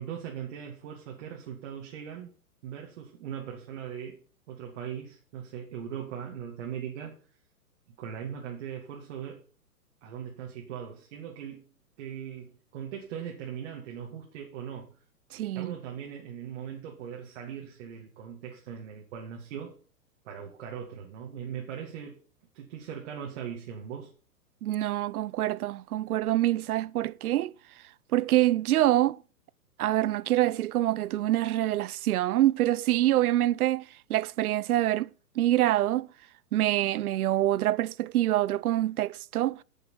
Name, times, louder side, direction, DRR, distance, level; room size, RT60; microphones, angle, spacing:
voice 1, 0.0-2.3 2.6-4.2 4.5-7.2 8.0-9.4 10.0-11.7 12.0-14.9 15.5-19.8 20.2-22.2 22.5-24.1, right 8 dB, 45° right, 2.4 m, -39 dB
voice 2, 15.3-15.7 24.6-27.5 28.1-29.2 29.8-35.1 35.4-36.1 36.5-39.6, right 14 dB, 65° right, 0.6 m, -26 dB
11.0 x 6.7 x 5.9 m
hypercardioid pair, 135°, 47 cm